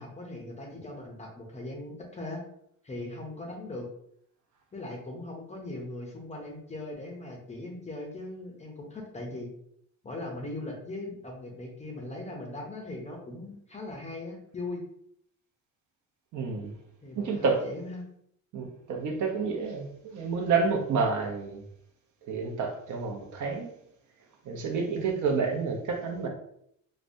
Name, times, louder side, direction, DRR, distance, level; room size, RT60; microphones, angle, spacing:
voice 1, 0.0-2.4 2.8-3.9 4.7-9.5 10.0-14.8 17.0-18.0, left 2 dB, 20° left, 0.5 m, -39 dB
voice 2, 16.3-16.8 17.1-17.6 18.5-21.6 22.3-23.7 24.4-26.3, right 5 dB, 55° right, 0.7 m, -29 dB
4.9 x 2.1 x 2.6 m
cardioid pair, 165°, 36 cm